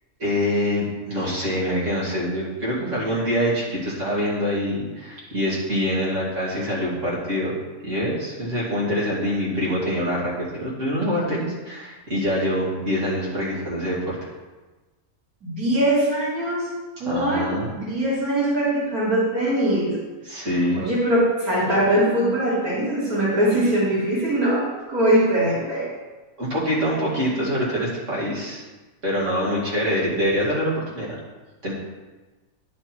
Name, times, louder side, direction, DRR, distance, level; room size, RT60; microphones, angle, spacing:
voice 1, 0.2-7.5 7.8-14.2 17.0-17.7 20.2-20.8 26.4-28.6 29.0-31.1 31.6-31.7, equal, 55° right, -8 dB, 2.9 m, -25 dB
voice 2, 15.4-16.7 17.0-20.0 20.3-20.5 20.7-25.9, right 1 dB, 85° right, -7 dB, 2.9 m, -22 dB
10.5 x 5.2 x 4.5 m, 1.2 s
omnidirectional pair, 1.5 m